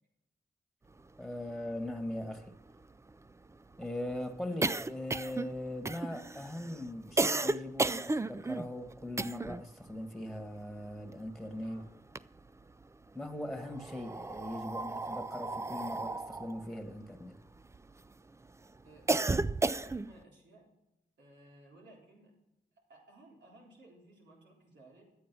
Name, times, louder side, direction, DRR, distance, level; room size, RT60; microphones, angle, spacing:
voice 1, 1.2-2.5 3.8-11.8 13.1-17.4, left 1 dB, ahead, 1.6 m, -40 dB
sound 1, 1.5-1.6 1.8-1.9 2.2-9.7 10.0-11.6 11.9-12.8 13.6-18.1 18.5-20.2, right 3 dB, 15° right, 0.3 m, -34 dB
voice 2, 11.5-11.9 15.0-15.3 18.8-19.1 19.7-20.7 21.2-22.3 22.9-25.0, right 2 dB, 90° right, 3.6 m, -58 dB
11.5 x 8.7 x 6.0 m
cardioid pair, 50°, 18 cm